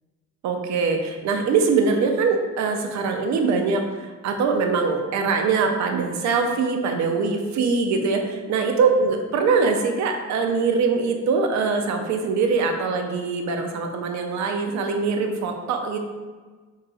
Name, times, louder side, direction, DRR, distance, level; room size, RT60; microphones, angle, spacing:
voice 1, 0.4-16.0, right 4 dB, 65° right, 4 dB, 0.5 m, -23 dB
3.1 x 2.9 x 2.3 m, 1.4 s
cardioid pair, 90°, 30 cm